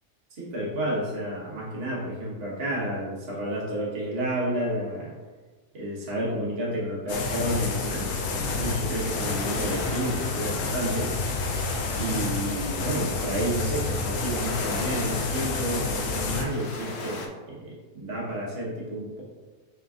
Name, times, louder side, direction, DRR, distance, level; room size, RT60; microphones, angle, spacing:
voice 1, 0.3-5.2 5.7-11.1 12.0-19.2, right 1 dB, 45° right, -5 dB, 1.3 m, -31 dB
sound 1, 7.1-16.4, left 3 dB, 65° left, 0.9 m, -29 dB
sound 2, 8.6-17.3, left 3 dB, 85° left, 1.2 m, -39 dB
3.7 x 3.5 x 3.5 m, 1.3 s
omnidirectional pair, 1.6 m